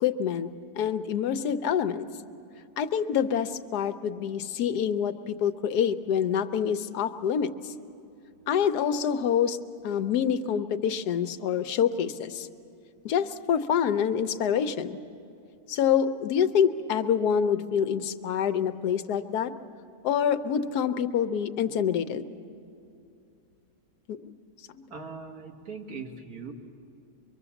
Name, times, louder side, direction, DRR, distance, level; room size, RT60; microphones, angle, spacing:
voice 1, 0.0-0.5 0.8-2.1 2.8-7.5 8.5-9.6 9.8-12.5 13.0-15.0 15.7-19.5 20.0-22.2 24.1-24.3, left 8 dB, 90° left, 10 dB, 1.3 m, -26 dB
voice 2, 24.9-26.5, right 4 dB, 70° right, 2 dB, 2.0 m, -40 dB
24.0 x 23.5 x 7.1 m, 2.5 s
omnidirectional pair, 1.6 m